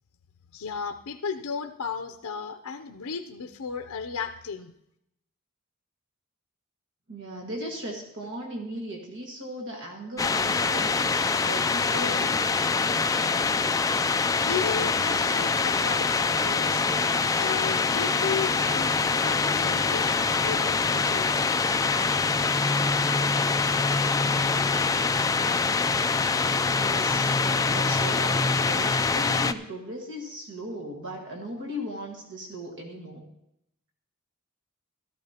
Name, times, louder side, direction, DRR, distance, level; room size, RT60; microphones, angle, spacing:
voice 1, 0.5-4.7 14.4-16.8 17.4-21.5, left 6 dB, 80° left, 6 dB, 0.6 m, -34 dB
voice 2, 7.1-12.5 16.8-17.0 26.7-33.3, equal, 55° right, 0 dB, 1.7 m, -37 dB
sound 1, 10.2-29.5, left 4 dB, 15° left, 0.3 m, -24 dB
15.0 x 13.5 x 2.9 m, 0.79 s
head